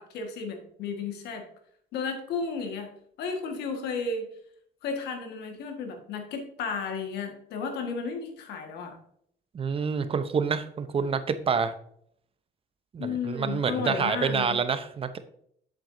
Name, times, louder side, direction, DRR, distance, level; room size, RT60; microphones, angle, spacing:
voice 1, 0.0-1.4 1.9-2.9 3.2-4.3 4.8-9.0 13.0-14.6, left 5 dB, 75° left, 4 dB, 1.6 m, -33 dB
voice 2, 9.5-11.7 12.9-15.2, right 6 dB, 35° right, 11 dB, 0.7 m, -27 dB
7.7 x 7.3 x 2.6 m, 0.67 s
cardioid pair, 110°, 17 cm